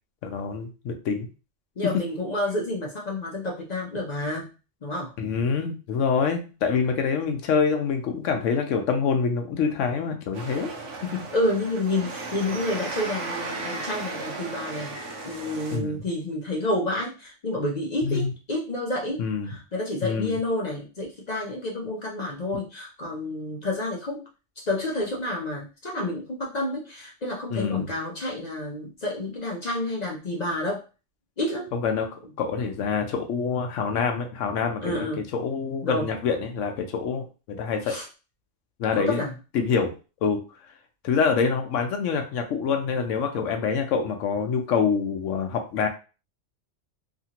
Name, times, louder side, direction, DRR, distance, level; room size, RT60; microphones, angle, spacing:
voice 1, 0.2-1.3 5.2-10.7 11.0-11.2 15.7-16.0 18.0-18.3 19.2-19.6 20.0-20.4 27.5-27.9 31.7-32.1 32.4-38.0 38.8-39.2 39.5-39.9 40.2-40.4 41.0-45.9, left 5 dB, 85° left, 5 dB, 1.0 m, -26 dB
voice 2, 1.8-4.5 4.8-5.1 11.3-24.2 24.6-30.8 31.4-31.7 34.8-35.2 35.8-36.1 37.8-38.1 38.9-39.3, left 1 dB, 50° left, -2 dB, 0.5 m, -29 dB
sound 1, 10.3-15.8, right 3 dB, 80° right, 1.0 m, -35 dB
2.8 x 2.5 x 2.8 m, 0.32 s
omnidirectional pair, 1.3 m